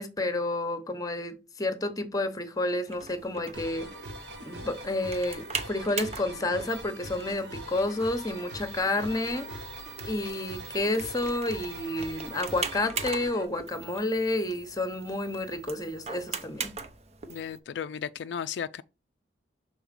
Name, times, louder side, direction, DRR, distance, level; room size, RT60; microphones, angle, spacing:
voice 1, 0.0-3.9 4.4-9.5 10.0-16.7, left 2 dB, 20° left, 0.9 m, -30 dB
sound 1, 2.9-17.6, right 5 dB, 35° right, 0.8 m, -41 dB
sound 2, 3.5-13.4, right 1 dB, 75° right, 1.9 m, -42 dB
voice 2, 17.3-18.8, left 8 dB, 75° left, 0.4 m, -35 dB
6.1 x 4.1 x 5.2 m
head